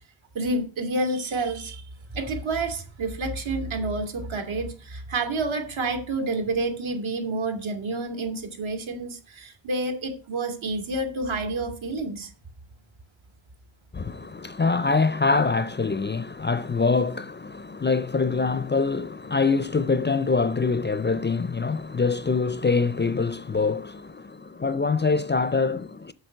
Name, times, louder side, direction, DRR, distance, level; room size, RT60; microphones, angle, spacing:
voice 1, 0.3-1.8 2.1-12.3, right 2 dB, 85° right, 2.4 m, -29 dB
voice 2, 13.9-26.1, left 4 dB, 25° left, 0.4 m, -24 dB
8.0 x 6.9 x 6.3 m
wide cardioid pair, 135°, 46 cm